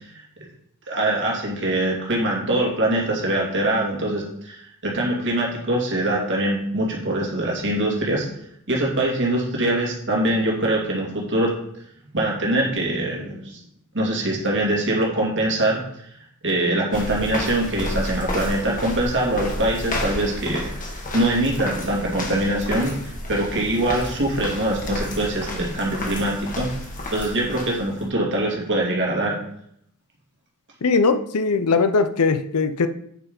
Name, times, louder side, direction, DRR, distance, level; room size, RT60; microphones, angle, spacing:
voice 1, 0.9-8.3 8.7-11.5 12.1-13.6 13.9-16.1 16.4-20.8 21.1-26.7 27.1-29.4, right 1 dB, 55° right, -3 dB, 2.6 m, -23 dB
sound 1, 16.9-28.1, left 1 dB, 35° left, 1.6 m, -31 dB
voice 2, 30.8-32.9, left 4 dB, 85° left, 11 dB, 0.6 m, -20 dB
9.2 x 4.7 x 5.3 m, 0.72 s
head